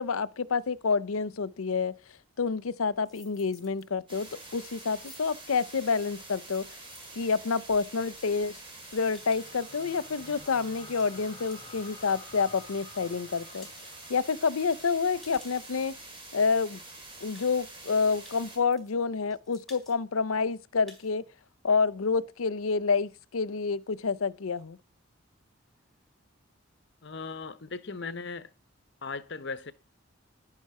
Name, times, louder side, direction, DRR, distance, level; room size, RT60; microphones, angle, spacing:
voice 1, 0.0-2.0 2.4-6.7 7.2-8.6 8.9-13.7 14.1-16.0 16.3-16.8 17.2-21.2 21.6-24.8, left 5 dB, 85° left, 0.6 m, -28 dB
sound 1, 3.0-3.8 4.2-12.8 13.2-16.0 16.6-16.7 16.9-17.0 17.3-17.9 18.2-19.0 19.3-20.0 20.3-20.4 20.7-21.1, left 2 dB, ahead, 3.8 m, -56 dB
sound 2, 4.1-18.6, right 2 dB, 25° right, 4.1 m, -47 dB
sound 3, 8.7-15.0, left 4 dB, 35° left, 4.0 m, -52 dB
voice 2, 27.0-28.5 29.0-29.7, left 4 dB, 55° left, 0.8 m, -38 dB
11.0 x 9.8 x 4.8 m
head